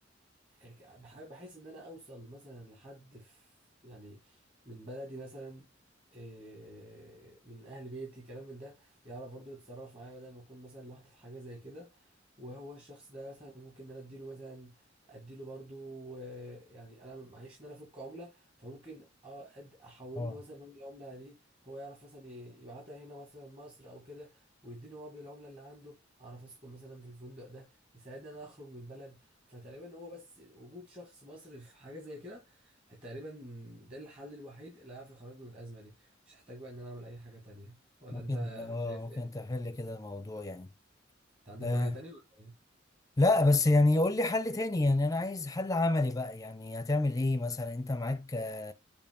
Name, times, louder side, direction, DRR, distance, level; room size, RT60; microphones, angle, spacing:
voice 1, 0.6-5.7 6.1-21.4 21.6-39.3 41.5-42.5, right 1 dB, 30° right, 1.9 m, -47 dB
voice 2, 38.1-40.7 41.6-42.0 43.2-48.7, left 2 dB, 20° left, 0.6 m, -29 dB
6.9 x 2.7 x 5.3 m
head